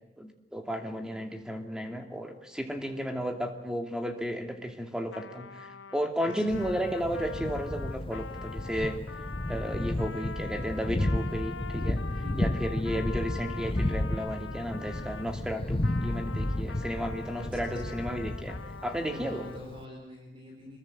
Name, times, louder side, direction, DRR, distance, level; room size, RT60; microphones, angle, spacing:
voice 1, 0.2-8.9 9.5-12.0 12.4-19.4, equal, 5° right, 5 dB, 2.6 m, -33 dB
Trumpet, 5.1-15.3 15.8-19.6, left 5 dB, 70° left, 1.0 m, -44 dB
Thunder, 6.5-19.8, left 1 dB, 30° left, 0.9 m, -33 dB
voice 2, 12.2-13.0 16.7-16.8 17.4-17.7 19.1-20.8, left 1 dB, 25° right, 0 dB, 4.3 m, -44 dB
25.5 x 22.0 x 7.9 m, 0.88 s
head